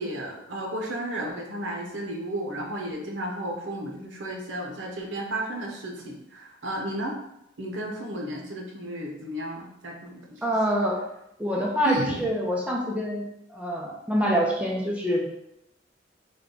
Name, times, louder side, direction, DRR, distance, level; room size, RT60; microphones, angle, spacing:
voice 1, 0.0-7.2 7.6-10.4 11.8-12.2, right 1 dB, 90° right, 0 dB, 0.8 m, -33 dB
voice 2, 10.4-11.0 11.4-13.2 13.5-15.3, equal, 5° right, -2 dB, 0.5 m, -25 dB
3.5 x 2.2 x 3.7 m, 0.81 s
head